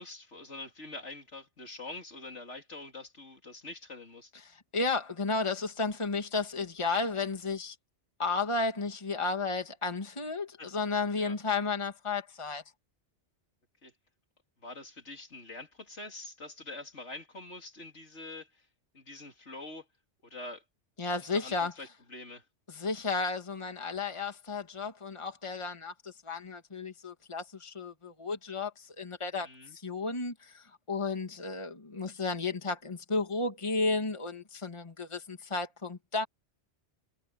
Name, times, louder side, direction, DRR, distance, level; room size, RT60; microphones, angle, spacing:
voice 1, 0.0-4.3 10.6-10.7 11.2-11.4 13.8-13.9 14.6-18.7 18.9-19.9 20.2-20.6 21.1-22.5 29.4-29.8, left 2 dB, 75° left, 3.5 m, -45 dB
voice 2, 4.4-7.8 8.2-12.6 21.0-21.7 22.7-36.3, left 3 dB, 25° left, 1.9 m, -33 dB
omnidirectional pair, 1.2 m